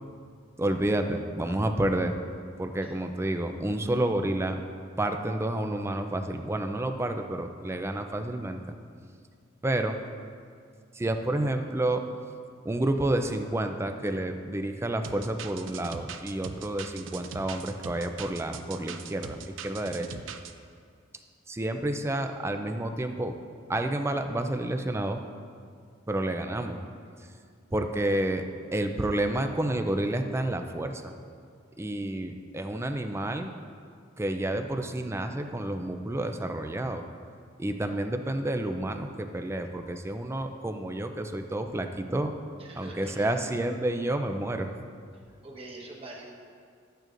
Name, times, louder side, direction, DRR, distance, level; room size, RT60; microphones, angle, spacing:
voice 1, 0.6-2.1 2.6-4.6 5.0-8.8 9.6-10.0 10.9-12.0 12.6-20.1 21.5-23.4 23.7-25.2 26.1-26.8 27.7-28.4 28.7-31.1 31.8-33.5 34.2-37.0 37.6-42.4 42.8-44.7, right 1 dB, 15° right, 6 dB, 0.4 m, -29 dB
sound 1, 15.0-20.5, right 6 dB, 75° right, 0.5 m, -41 dB
voice 2, 42.6-43.3 45.4-46.5, right 2 dB, 30° right, -2 dB, 1.3 m, -44 dB
12.5 x 9.0 x 2.6 m, 2.2 s
head